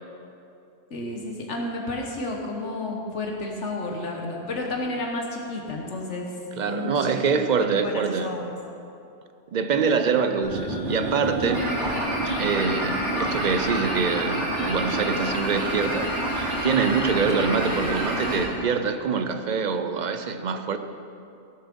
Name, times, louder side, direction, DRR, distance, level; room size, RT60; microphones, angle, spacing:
voice 1, 0.9-6.3 6.6-8.4 9.7-10.0 17.4-17.5, left 2 dB, 80° left, 0 dB, 1.5 m, -31 dB
voice 2, 6.6-8.4 9.5-11.7 12.4-16.1 16.6-20.8, right 5 dB, 50° right, 9 dB, 0.6 m, -25 dB
sound 1, 10.4-18.4, right 1 dB, 75° right, 3.8 m, -27 dB
16.0 x 7.1 x 5.2 m, 2.6 s
omnidirectional pair, 1.2 m